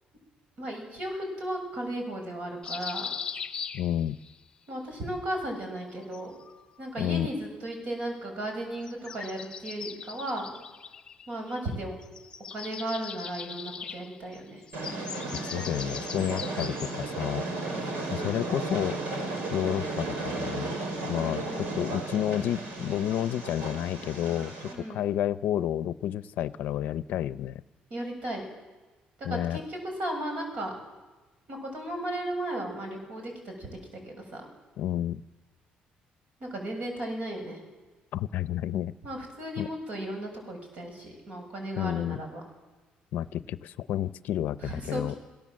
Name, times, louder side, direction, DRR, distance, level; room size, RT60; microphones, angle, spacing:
voice 1, 0.6-3.1 4.7-6.4 6.8-10.5 11.3-11.9 12.5-14.6 17.7-18.4 21.2-21.8 24.7-25.0 27.9-28.5 29.3-30.8 31.5-34.5 36.4-37.6 39.0-42.4 44.6-45.2, right 1 dB, 50° right, 3 dB, 7.1 m, -35 dB
sound 1, 2.6-4.4 5.8-6.8 8.8-11.7 12.0-17.2, left 6 dB, 25° left, 1.1 m, -40 dB
voice 2, 3.7-4.2 7.0-7.3 15.5-17.4 18.1-19.0 19.5-20.8 21.0-27.6 29.2-29.6 34.8-35.2 38.1-38.9 39.6-39.7 41.8-42.2 43.1-45.1, left 11 dB, 70° left, 15 dB, 0.6 m, -30 dB
Train, 14.7-24.7, right 2 dB, 80° right, 4.8 m, -34 dB
27.5 x 17.5 x 7.6 m, 1.2 s
cardioid pair, 155°, 3 cm